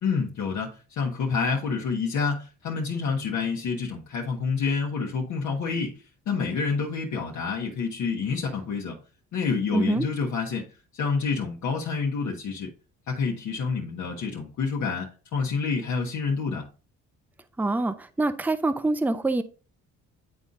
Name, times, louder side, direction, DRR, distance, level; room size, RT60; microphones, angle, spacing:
voice 1, 0.0-9.0 9.3-10.7 10.9-12.7 13.1-16.7, left 5 dB, 75° left, 1.1 m, -28 dB
voice 2, 9.7-10.1 17.6-19.4, right 2 dB, 5° right, 0.5 m, -25 dB
9.9 x 4.0 x 2.5 m
cardioid pair, 90°, 30 cm